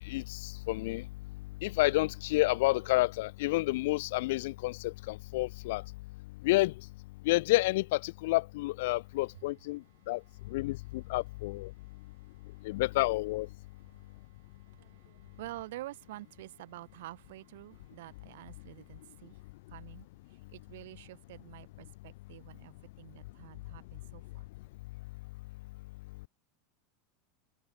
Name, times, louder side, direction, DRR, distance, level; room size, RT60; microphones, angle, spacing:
voice 1, 0.1-1.0 1.6-5.8 6.4-6.7 7.2-10.2 10.5-11.7 12.6-13.5, left 20 dB, 60° left, 0.8 m, -29 dB
voice 2, 9.9-11.2 11.7-12.8 13.7-19.4 19.7-20.1 20.5-24.4, right 16 dB, 70° right, 1.8 m, -49 dB
supercardioid pair, 175°, 0 cm